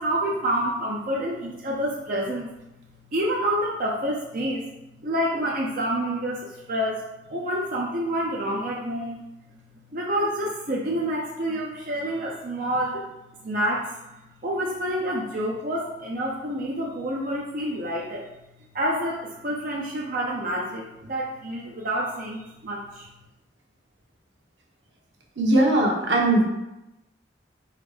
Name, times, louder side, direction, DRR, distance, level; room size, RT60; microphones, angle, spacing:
voice 1, 0.0-2.5 3.1-4.6 5.0-7.0 7.3-9.2 9.9-13.0 13.4-14.0 14.4-18.3 18.7-23.1, right 1 dB, 50° right, -3 dB, 0.8 m, -28 dB
voice 2, 25.4-26.4, right 1 dB, 80° right, -1 dB, 1.3 m, -19 dB
4.8 x 4.1 x 5.0 m, 0.95 s
head